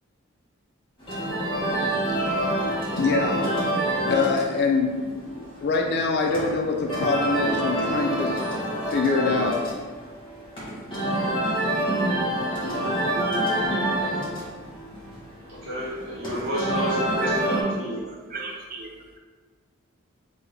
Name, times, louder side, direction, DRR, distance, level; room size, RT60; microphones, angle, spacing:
sound 1, 1.0-17.6, right 1 dB, 25° left, 1.1 m, -27 dB
voice 1, 3.0-3.5 4.0-8.4 8.9-9.6, left 4 dB, 55° left, 2 dB, 0.3 m, -24 dB
voice 2, 15.5-18.2, equal, 65° right, -11 dB, 0.9 m, -30 dB
voice 3, 17.2-17.7 18.3-19.2, right 3 dB, 45° right, 1 dB, 0.5 m, -38 dB
3.6 x 2.2 x 3.3 m, 1.5 s
head